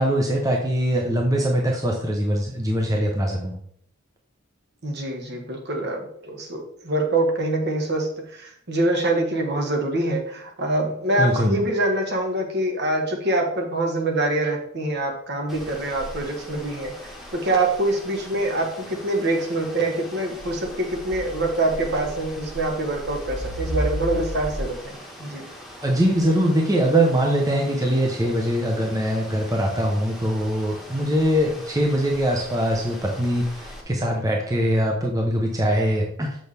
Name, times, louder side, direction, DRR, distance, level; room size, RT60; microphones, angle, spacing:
voice 1, 0.0-3.5 11.2-11.5 25.8-36.4, equal, 15° right, 0 dB, 0.8 m, -22 dB
voice 2, 4.8-25.5, right 2 dB, 50° right, 2 dB, 1.5 m, -25 dB
sound 1, 15.5-33.8, equal, ahead, 1.3 m, -37 dB
6.9 x 6.2 x 3.4 m, 0.66 s
head